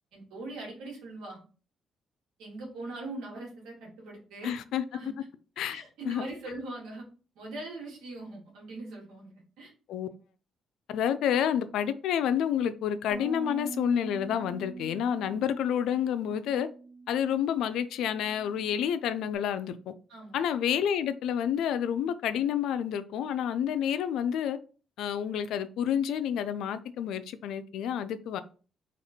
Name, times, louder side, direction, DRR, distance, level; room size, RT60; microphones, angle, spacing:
voice 1, 0.1-1.4 2.4-4.5 4.9-5.1 5.6-7.1 7.4-9.7 20.1-20.4, right 2 dB, 90° right, 2.2 m, -41 dB
voice 2, 4.4-4.8 5.6-6.3 9.9-10.1 10.9-16.7 17.1-19.9 20.3-24.6 25.0-28.4, left 9 dB, 85° left, 0.4 m, -29 dB
Bass guitar, 13.1-19.4, right 3 dB, 25° right, 0.8 m, -44 dB
4.1 x 2.4 x 4.4 m
cardioid pair, 90°, 0 cm